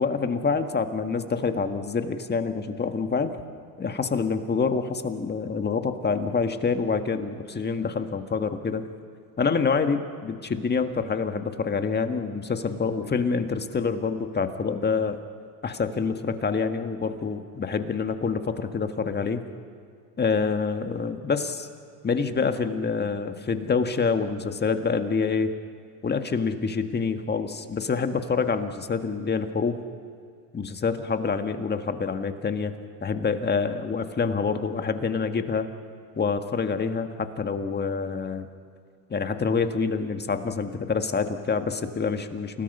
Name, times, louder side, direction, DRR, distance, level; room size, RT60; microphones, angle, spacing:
voice 1, 0.0-3.3 3.8-8.8 9.4-15.2 15.6-19.4 20.2-21.7 22.0-25.5 26.0-29.8 30.5-32.7 33.0-35.7 36.1-38.5 39.1-42.6, left 5 dB, 25° left, 7 dB, 1.7 m, -26 dB
29.5 x 18.5 x 5.6 m, 2.3 s
supercardioid pair, 90°, 43 cm